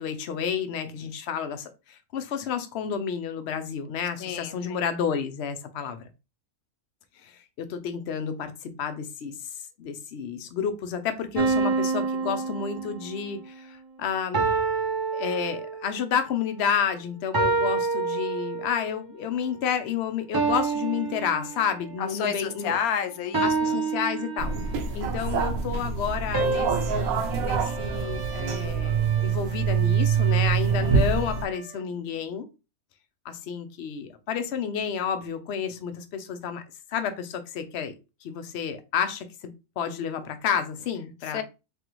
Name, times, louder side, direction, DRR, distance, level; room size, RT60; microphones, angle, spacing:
voice 1, 0.0-6.0 7.2-9.3 9.8-14.4 15.1-22.8 23.4-24.6 24.9-32.5 33.2-36.6 36.9-37.9 38.2-39.3 39.8-41.4, left 7 dB, 60° left, 0.8 m, -30 dB
voice 2, 4.2-4.8 22.0-23.8 41.2-41.4, left 8 dB, 85° left, 1.1 m, -30 dB
sound 1, 11.4-13.3 14.3-16.0 17.3-18.9 20.3-22.0 23.3-25.0 26.3-28.7, right 4 dB, 25° right, 0.4 m, -28 dB
sound 2, 24.4-31.4, right 6 dB, 80° right, 1.1 m, -25 dB
Trumpet, 27.0-31.9, right 6 dB, 50° right, 0.8 m, -43 dB
3.8 x 3.3 x 3.0 m
omnidirectional pair, 1.5 m